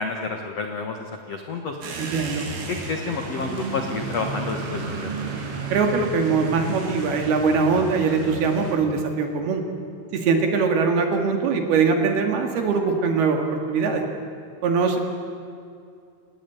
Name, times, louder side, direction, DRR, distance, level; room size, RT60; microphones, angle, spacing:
voice 1, 0.0-1.8 2.7-5.1, left 4 dB, 70° left, 4 dB, 1.5 m, -29 dB
sound 1, 1.8-8.7, right 3 dB, 85° right, 5.9 m, -33 dB
voice 2, 2.0-2.4 5.7-9.6 10.1-14.0 14.6-15.0, right 5 dB, 60° right, 4 dB, 3.9 m, -22 dB
29.5 x 17.5 x 9.5 m, 2.4 s
omnidirectional pair, 5.5 m